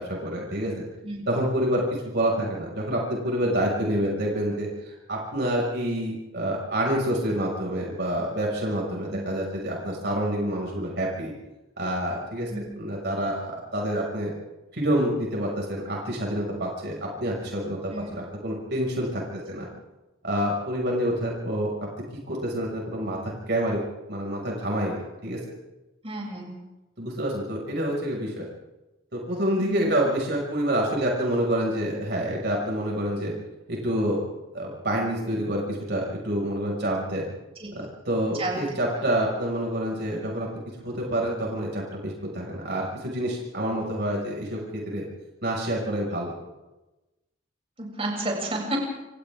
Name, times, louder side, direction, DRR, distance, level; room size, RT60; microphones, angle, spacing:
voice 1, 0.0-0.8 1.3-11.3 11.8-14.3 14.7-16.9 17.2-19.2 19.5-19.7 20.2-21.7 22.3-23.8 24.1-25.4 27.0-28.5 29.1-33.3 33.7-34.2 34.5-37.2 38.1-40.5 40.8-45.0 45.4-46.3, right 1 dB, 60° right, -2 dB, 6.1 m, -27 dB
voice 2, 26.0-26.6 29.6-29.9 37.6-37.7 38.4-38.6 47.8-48.8, right 2 dB, 30° right, -2 dB, 7.5 m, -31 dB
29.0 x 28.5 x 3.7 m, 1.0 s
head